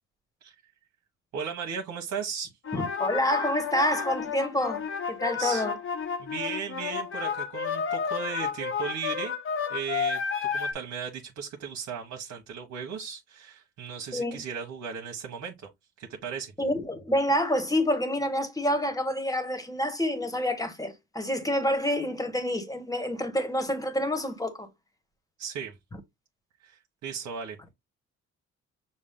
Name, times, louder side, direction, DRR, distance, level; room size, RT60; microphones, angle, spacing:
voice 1, 1.3-2.5 5.4-5.6 6.2-9.3 9.7-10.2 10.5-15.5 16.0-16.5 25.4-25.7 26.6-27.7, right 6 dB, 70° right, 1.1 m, -36 dB
sound 1, 2.6-10.7, left 6 dB, 45° left, 1.0 m, -31 dB
voice 2, 2.7-5.8 14.1-14.4 16.6-24.7, left 1 dB, 10° left, 1.4 m, -28 dB
6.3 x 2.3 x 3.6 m
cardioid pair, 90°, 30 cm